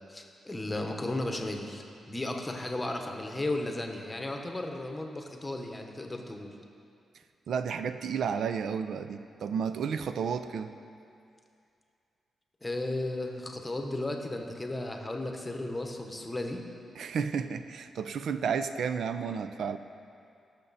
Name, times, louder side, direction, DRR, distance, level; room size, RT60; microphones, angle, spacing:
voice 1, 0.1-6.5 12.6-16.6, left 2 dB, 15° left, 3 dB, 1.0 m, -35 dB
voice 2, 7.5-10.7 17.0-19.8, right 6 dB, 75° right, 10 dB, 0.5 m, -32 dB
18.0 x 6.7 x 4.1 m, 2.4 s
cardioid pair, 120°, 0 cm